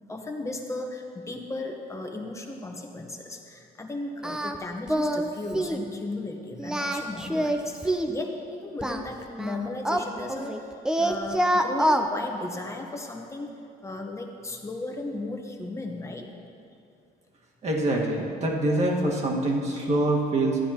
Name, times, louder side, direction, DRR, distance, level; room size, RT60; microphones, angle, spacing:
voice 1, 0.1-10.7 11.0-16.3, left 2 dB, 15° left, 2 dB, 1.1 m, -36 dB
Singing, 4.2-4.6 4.9-5.3 5.5-5.8 6.6-8.2 8.8-10.6 10.8-12.1, right 1 dB, 5° right, 0.5 m, -25 dB
voice 2, 17.6-20.6, right 1 dB, 40° right, -2 dB, 1.7 m, -25 dB
14.0 x 9.3 x 2.9 m, 2.5 s
cardioid pair, 110°, 17 cm